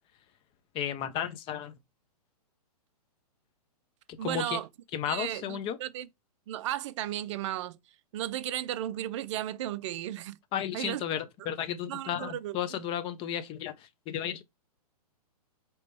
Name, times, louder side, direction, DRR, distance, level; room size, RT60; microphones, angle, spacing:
voice 1, 0.7-1.8 4.2-4.6 4.9-5.8 10.5-14.4, left 9 dB, 25° left, 0.7 m, -33 dB
voice 2, 4.2-4.7 5.1-6.1 6.5-7.8 8.1-10.4 10.7-11.0 11.4-11.5 11.9-12.8, right 12 dB, 50° right, 0.5 m, -35 dB
5.0 x 3.0 x 3.3 m
hypercardioid pair, 130°, 20 cm